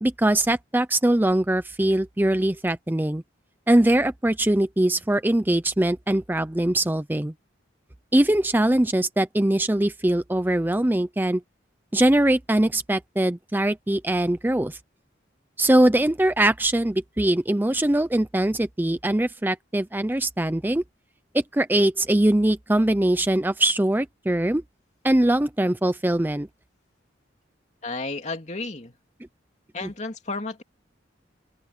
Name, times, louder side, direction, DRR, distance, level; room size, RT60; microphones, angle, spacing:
voice 1, 0.0-3.2 3.7-7.3 8.1-11.4 11.9-14.8 15.6-20.8 21.3-24.6 25.0-26.5 29.8-29.9, right 1 dB, 10° right, 0.5 m, -22 dB
voice 2, 27.8-29.0 29.7-30.6, left 3 dB, 40° left, 2.7 m, -32 dB
open air
head